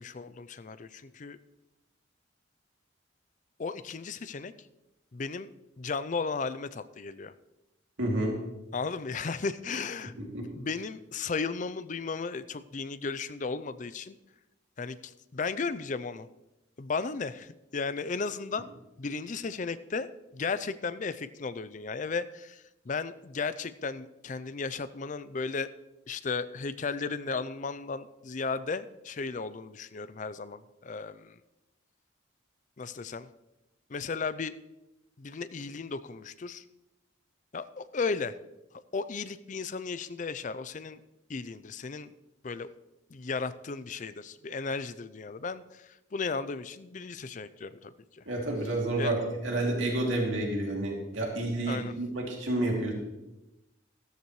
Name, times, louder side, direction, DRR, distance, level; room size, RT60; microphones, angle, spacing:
voice 1, 0.0-1.4 3.6-4.5 5.1-5.5 5.8-7.3 8.7-10.1 10.5-14.2 14.8-16.3 16.8-18.7 19.0-20.1 20.3-25.7 26.1-31.4 32.8-33.3 33.9-34.5 35.2-36.6 37.5-38.3 38.9-41.0 41.3-42.1 42.4-42.7 43.1-48.2 49.0-49.1 51.7-51.9, left 4 dB, 40° left, 14 dB, 0.4 m, -35 dB
voice 2, 8.0-8.4 10.3-10.5 48.3-52.9, right 1 dB, 80° right, -1 dB, 2.6 m, -29 dB
13.5 x 13.5 x 3.1 m, 0.97 s
head